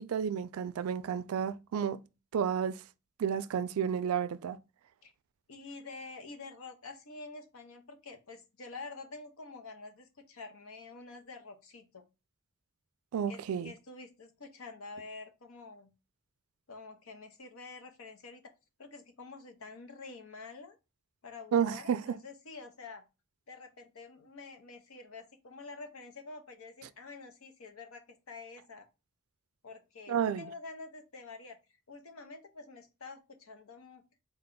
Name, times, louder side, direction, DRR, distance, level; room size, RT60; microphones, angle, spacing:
voice 1, 0.0-2.0 2.3-2.8 3.2-4.6 13.1-13.7 21.5-22.0 30.1-30.5, right 8 dB, 85° right, 0.3 m, -31 dB
voice 2, 5.5-12.0 13.3-15.9 16.7-18.5 18.8-20.8 21.2-23.0 23.5-28.9 29.6-31.6 31.9-34.0, left 3 dB, 80° left, 0.7 m, -48 dB
4.0 x 2.2 x 3.7 m
head